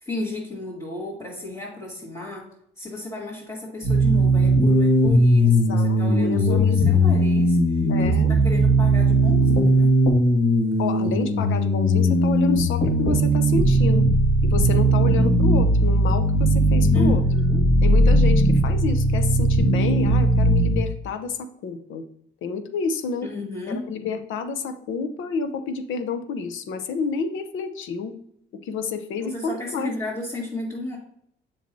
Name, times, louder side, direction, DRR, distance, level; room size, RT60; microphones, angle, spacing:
voice 1, 0.0-2.5 2.8-10.0 16.9-17.7 23.2-23.9 29.2-31.0, left 1 dB, 20° left, -7 dB, 2.3 m, -33 dB
sound 1, 3.8-20.8, right 1 dB, 45° left, 2.1 m, -18 dB
voice 2, 5.4-6.9 7.9-8.3 10.8-14.1 14.4-17.2 17.8-22.1 22.4-23.3 23.7-28.2 28.6-29.9, left 5 dB, 80° left, 9 dB, 0.8 m, -29 dB
7.5 x 5.8 x 2.7 m, 0.73 s
cardioid pair, 90°, 20 cm